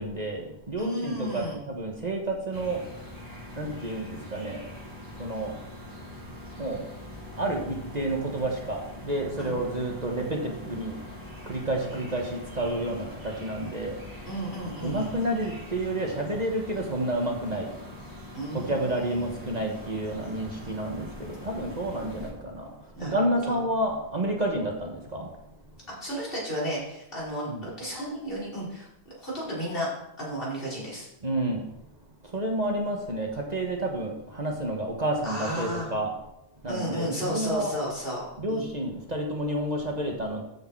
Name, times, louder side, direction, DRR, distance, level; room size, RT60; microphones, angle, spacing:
voice 1, 0.0-2.8 3.5-4.6 5.1-5.6 6.6-6.9 7.4-11.2 11.4-14.0 14.8-17.7 18.5-25.3 27.5-27.6 31.2-31.7 32.2-36.1 36.6-37.7 38.4-40.4, right 1 dB, 40° right, 1 dB, 1.5 m, -30 dB
voice 2, 0.8-1.6 9.4-9.5 14.3-15.1 18.3-19.5 22.9-23.1 23.4-23.5 25.9-29.9 30.2-31.1 35.2-35.9 36.6-38.2 38.5-38.7, equal, 55° left, -6 dB, 5.0 m, -33 dB
sound 1, 2.5-22.3, left 1 dB, 20° right, 2.8 m, -43 dB
13.5 x 6.7 x 4.6 m, 0.84 s
omnidirectional pair, 1.1 m